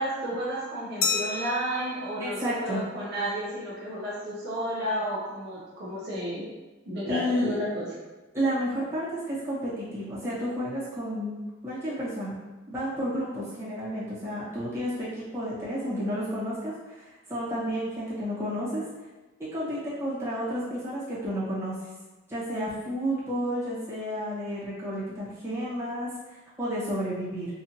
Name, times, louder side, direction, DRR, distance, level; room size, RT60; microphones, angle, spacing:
voice 1, 0.0-6.5 6.9-7.9, equal, 55° right, -7 dB, 1.0 m, -32 dB
Glass, 1.0-3.5, left 4 dB, 85° left, 0.5 m, -33 dB
voice 2, 2.2-2.8 7.0-7.6 8.3-12.4 12.7-17.0 17.3-18.8 19.5-21.9 22.3-27.5, equal, 15° right, -11 dB, 1.5 m, -31 dB
4.3 x 2.6 x 2.9 m, 1.2 s
head